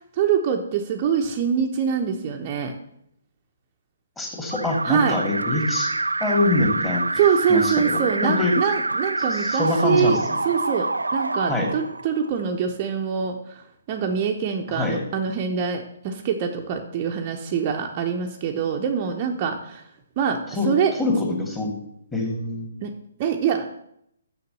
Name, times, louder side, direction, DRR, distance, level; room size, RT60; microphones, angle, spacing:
voice 1, 0.1-2.8 4.8-5.2 7.1-10.2 10.4-19.8 20.2-21.0 22.8-22.9 23.2-23.7, right 7 dB, 35° right, 2 dB, 0.8 m, -24 dB
voice 2, 4.2-5.9 6.2-7.0 7.5-8.5 9.3-10.2 11.5-11.7 14.7-15.0 20.5-20.7 21.0-21.7 22.1-22.7, left 2 dB, 10° left, 0 dB, 2.4 m, -24 dB
Alarm, 4.5-12.4, right 2 dB, 80° right, 0.4 m, -26 dB
6.7 x 6.6 x 6.8 m, 0.74 s
figure-of-eight pair, 135°, 0 cm